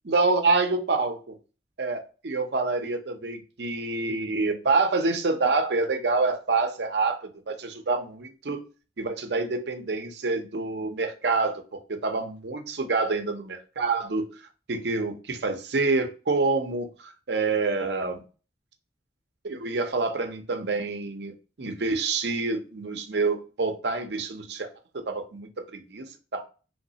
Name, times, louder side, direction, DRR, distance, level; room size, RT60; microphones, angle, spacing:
voice 1, 0.1-1.4 1.8-8.6 9.0-11.6 11.9-14.3 14.7-18.2 19.4-24.7 24.9-26.4, right 3 dB, 65° right, 0.6 m, -27 dB
3.3 x 3.1 x 2.8 m
head